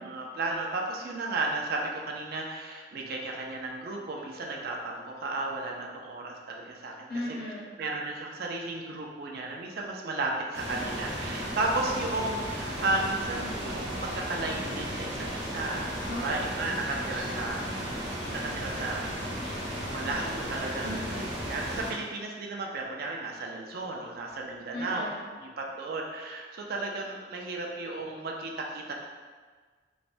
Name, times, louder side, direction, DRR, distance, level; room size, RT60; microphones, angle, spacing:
voice 1, 0.0-7.4 7.8-18.0 18.3-19.1 19.8-21.0 21.4-25.0 25.4-28.9, right 2 dB, 55° right, 0 dB, 0.3 m, -34 dB
voice 2, 7.1-7.7 16.1-16.7 16.9-18.1 20.8-21.4 24.7-25.2, left 1 dB, 55° left, -5 dB, 0.7 m, -38 dB
sound 1, 10.5-21.9, equal, 85° right, 0.9 m, -35 dB
3.1 x 2.1 x 2.5 m, 1.5 s
head